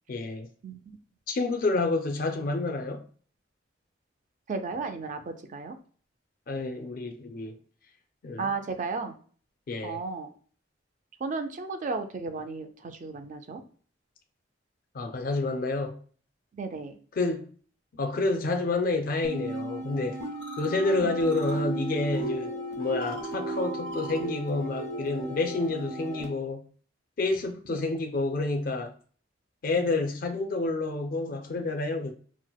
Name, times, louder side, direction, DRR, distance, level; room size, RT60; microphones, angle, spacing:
voice 1, 0.1-0.5 1.3-3.0 6.5-7.6 8.2-8.5 9.7-10.0 14.9-16.0 17.2-17.4 17.9-20.2 20.6-26.6 27.2-28.9 29.6-32.1, left 3 dB, 50° left, 0.4 m, -29 dB
voice 2, 4.5-5.8 8.4-9.1 9.8-10.3 11.2-13.6 16.6-17.0 21.0-21.1 27.7-27.9 29.8-29.9, right 4 dB, 40° right, 0.4 m, -34 dB
sound 1, 19.2-26.3, right 2 dB, 65° right, 0.8 m, -34 dB
4.4 x 2.0 x 2.2 m
head